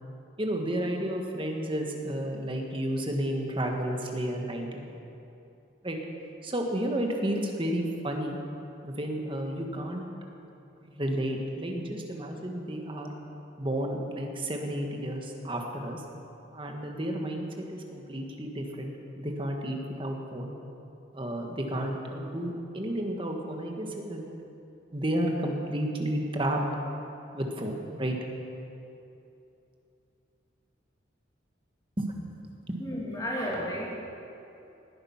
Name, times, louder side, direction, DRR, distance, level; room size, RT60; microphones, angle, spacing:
voice 1, 0.4-4.9 5.8-6.0 6.4-8.4 8.8-10.1 10.8-13.1 13.6-16.0 16.5-20.5 21.1-24.2 24.9-26.6 27.3-28.2 32.0-32.2 32.7-32.8, right 1 dB, 25° right, 1 dB, 1.5 m, -32 dB
voice 2, 32.8-33.9, equal, 20° left, -5 dB, 3.0 m, -32 dB
19.5 x 9.9 x 5.9 m, 2.8 s
head